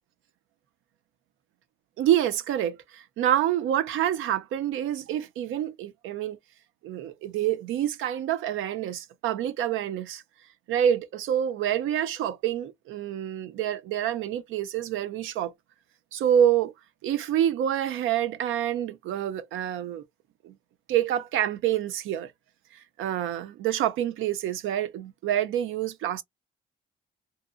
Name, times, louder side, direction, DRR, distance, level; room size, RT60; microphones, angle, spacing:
voice 1, 2.0-6.4 6.8-10.2 10.7-15.5 16.1-16.7 17.0-20.0 20.4-20.5 20.9-22.3 23.0-26.2, right 10 dB, 85° right, 0.5 m, -27 dB
2.8 x 2.0 x 2.3 m
cardioid pair, 90°, 20 cm